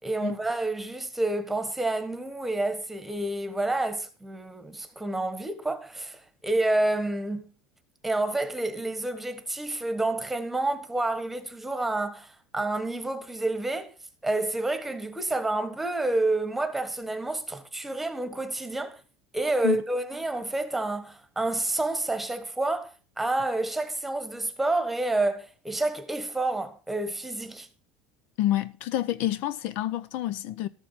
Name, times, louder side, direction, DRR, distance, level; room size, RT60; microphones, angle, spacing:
voice 1, 0.0-7.5 8.0-13.9 14.2-19.0 19.3-27.7, right 2 dB, 5° right, 1.4 m, -29 dB
voice 2, 28.4-30.7, left 13 dB, 65° left, 0.6 m, -28 dB
13.5 x 7.0 x 5.6 m
supercardioid pair, 135°, 3 cm